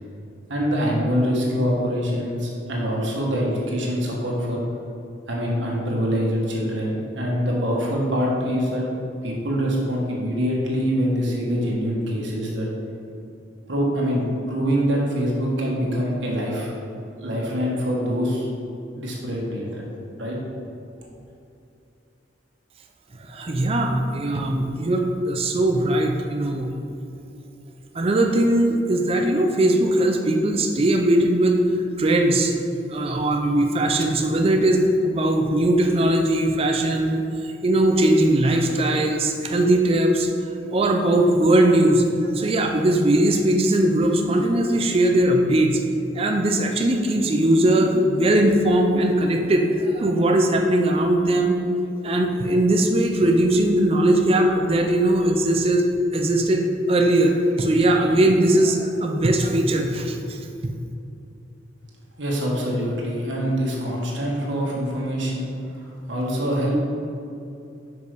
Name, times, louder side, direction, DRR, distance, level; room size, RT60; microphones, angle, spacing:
voice 1, 0.5-4.6 5.3-8.8 9.2-12.7 13.7-16.7 17.2-18.5 18.9-19.8 20.2-20.4 62.2-65.5 66.1-66.8, equal, 90° right, -3 dB, 1.6 m, -24 dB
voice 2, 23.3-26.7 27.9-31.6 32.0-32.6 32.9-40.3 40.7-45.8 46.1-51.6 52.0-55.9 56.1-60.4, right 1 dB, 30° right, 3 dB, 0.5 m, -20 dB
6.3 x 5.2 x 4.9 m, 2.7 s
head